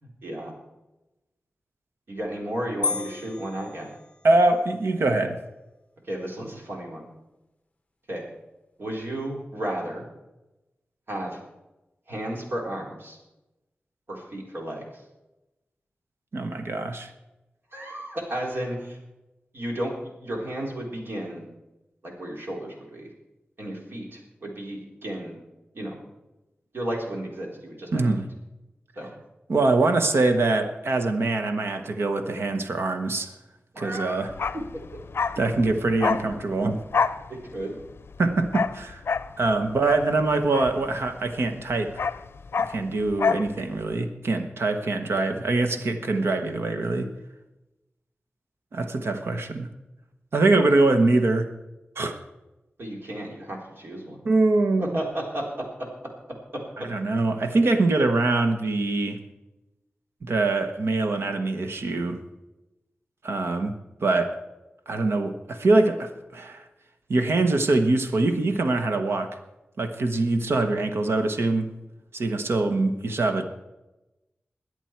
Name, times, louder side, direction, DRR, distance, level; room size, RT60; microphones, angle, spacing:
voice 1, 0.0-0.5 2.1-3.9 6.0-7.1 8.1-8.2 8.8-10.1 11.1-11.4 12.1-13.2 14.1-15.0 17.7-19.0 19.5-21.4 22.0-23.1 23.6-25.3 25.7-26.0 26.7-28.0 29.0-29.1 33.7-34.3 34.5-34.6 37.3-37.7 52.8-54.2 54.8-55.9 56.5-56.6, right 1 dB, 65° right, -1 dB, 3.9 m, -33 dB
sound 1, 2.8-4.6, left 4 dB, 30° left, 0.6 m, -33 dB
voice 2, 4.2-5.4 16.3-17.1 27.9-28.2 29.5-33.3 33.8-34.3 35.4-36.8 38.2-39.0 39.4-42.0 42.6-47.1 48.7-49.7 50.3-51.5 52.0-52.2 54.2-55.0 56.9-59.2 60.2-62.2 63.2-63.7 64.0-64.3 64.9-66.7 67.1-69.4 69.8-71.7 72.1-73.5, right 2 dB, 90° right, 7 dB, 1.2 m, -23 dB
Bark, 34.3-41.3 41.6-43.5 43.8-43.9, left 5 dB, 80° left, 0.5 m, -28 dB
22.0 x 8.0 x 4.6 m, 1.0 s
wide cardioid pair, 80°, 4 cm